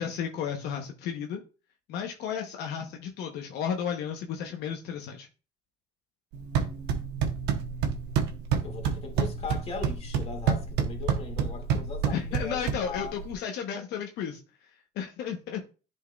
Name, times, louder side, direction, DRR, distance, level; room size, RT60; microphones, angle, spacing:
voice 1, 0.0-1.4 1.9-5.3 12.1-14.4 15.0-15.7, left 7 dB, 80° left, 0.9 m, -33 dB
sound 1, 6.3-13.3, right 7 dB, 85° right, 1.0 m, -29 dB
voice 2, 8.6-13.2, left 4 dB, 35° left, 2.1 m, -38 dB
10.5 x 4.6 x 2.3 m
cardioid pair, 110°, 17 cm